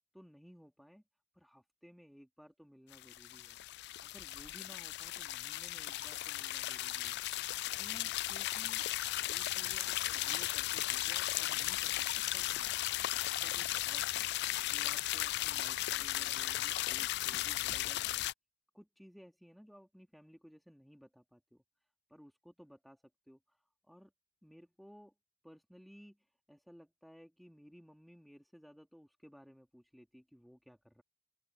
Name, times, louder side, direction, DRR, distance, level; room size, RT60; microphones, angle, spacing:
voice 1, 0.1-1.0 1.3-3.6 4.0-7.2 7.7-8.9 9.2-12.7 13.1-14.3 14.6-18.3 18.7-21.6 22.1-23.0 23.3-23.6 23.9-24.1 24.4-25.1 25.4-31.0, equal, ahead, 3.4 m, -58 dB
sound 1, 2.9-18.3, left 15 dB, 55° left, 0.3 m, -36 dB
open air
head